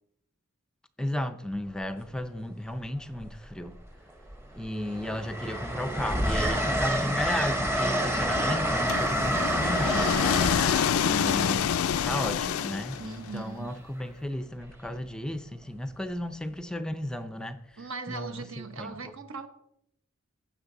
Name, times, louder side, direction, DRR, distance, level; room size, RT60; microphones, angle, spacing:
voice 1, 1.0-3.7 4.5-10.1 11.0-19.1, left 1 dB, 5° left, 0.5 m, -34 dB
Train, 1.5-1.8 3.1-3.9 4.3-13.0 14.6-14.9, equal, 10° right, 0.9 m, -29 dB
sound 1, 8.9-13.3, left 8 dB, 75° left, 0.4 m, -27 dB
voice 2, 13.0-13.7 17.8-19.5, right 4 dB, 65° right, 1.1 m, -39 dB
15.5 x 7.6 x 3.9 m
head